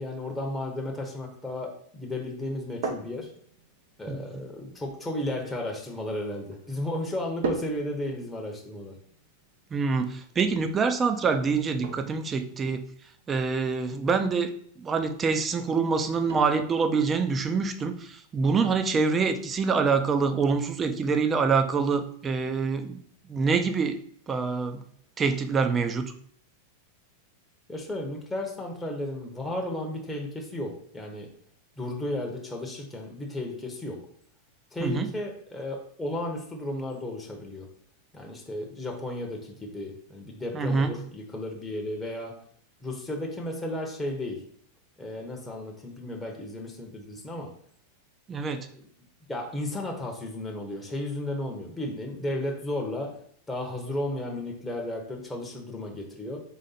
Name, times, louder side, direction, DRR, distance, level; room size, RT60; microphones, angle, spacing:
voice 1, 0.0-3.3 4.0-8.9 27.7-31.3 31.8-34.0 34.7-37.7 38.1-42.4 42.8-44.4 45.0-47.5 48.5-48.8 49.3-53.1 53.5-56.4, left 1 dB, 10° left, 0 dB, 0.8 m, -34 dB
sound 1, 2.4-20.5, right 4 dB, 70° right, 0.7 m, -43 dB
voice 2, 9.7-12.8 13.3-14.5 14.8-23.0 23.3-24.0 24.3-24.8 25.2-26.1 34.8-35.1 40.5-40.9 48.3-48.7, right 5 dB, 25° right, 9 dB, 0.5 m, -25 dB
4.0 x 3.1 x 4.0 m, 0.63 s
hypercardioid pair, 115°, 0 cm